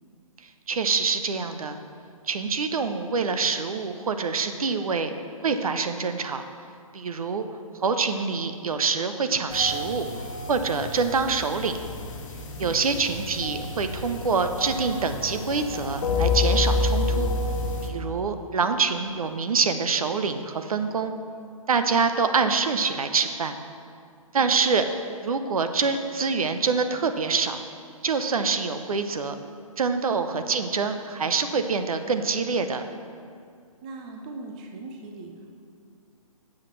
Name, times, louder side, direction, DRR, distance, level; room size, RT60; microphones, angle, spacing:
voice 1, 0.7-1.8 2.3-5.1 5.4-6.4 6.9-7.5 7.8-10.1 10.5-11.8 12.6-17.3 17.8-21.1 21.7-23.6 24.3-24.8 25.2-27.6 28.0-29.3 29.8-32.8, right 5 dB, 70° right, 8 dB, 0.7 m, -25 dB
sound 1, 9.5-17.9, left 3 dB, 55° left, 1.2 m, -29 dB
voice 2, 12.6-13.0 24.4-24.6 33.8-35.6, right 3 dB, 15° right, 2 dB, 0.3 m, -41 dB
12.0 x 7.5 x 3.2 m, 2.2 s
hypercardioid pair, 150°, 19 cm